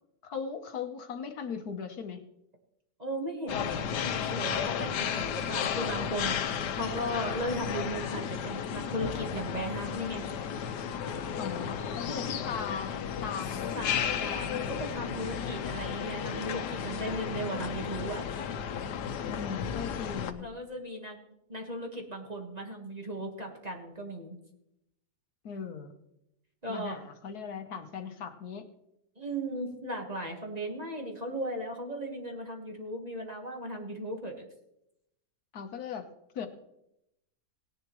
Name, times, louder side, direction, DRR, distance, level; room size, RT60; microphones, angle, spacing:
voice 1, 0.2-2.2 11.4-13.0 13.2-13.8 19.2-20.5 25.4-25.9 26.7-28.7 35.5-36.1 36.3-36.5, left 6 dB, 70° left, 7 dB, 1.5 m, -38 dB
voice 2, 3.0-10.2 13.7-18.2 20.4-21.2 21.5-24.4 26.6-27.0 29.2-34.3, right 1 dB, 25° right, 1 dB, 1.5 m, -37 dB
sound 1, 3.5-20.3, left 8 dB, 90° left, 1.4 m, -33 dB
18.0 x 10.5 x 3.1 m, 0.83 s
omnidirectional pair, 1.8 m